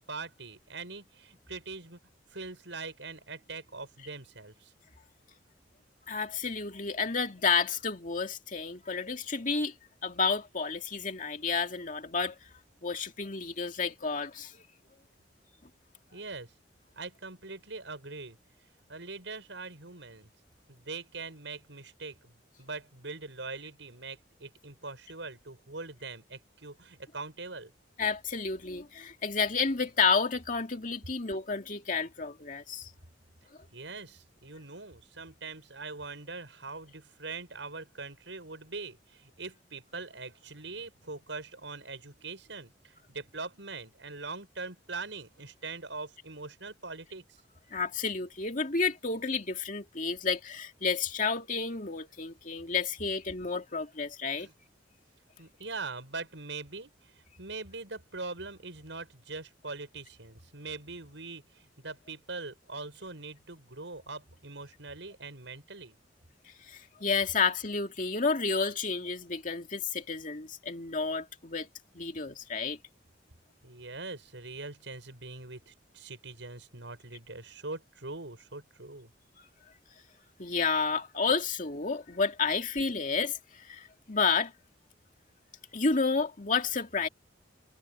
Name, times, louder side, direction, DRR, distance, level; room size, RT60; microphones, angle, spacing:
voice 1, 0.0-2.0 2.3-4.7 16.1-16.5 17.0-18.4 18.9-20.3 20.7-27.7 33.7-47.2 54.4-54.5 55.4-66.0 73.6-79.1, right 3 dB, 80° right, 6.0 m, -42 dB
voice 2, 6.1-9.7 10.0-12.4 12.8-14.6 28.0-32.9 47.7-54.5 66.7-71.7 71.9-72.8 80.4-84.5 85.7-87.1, left 5 dB, 45° left, 2.4 m, -31 dB
head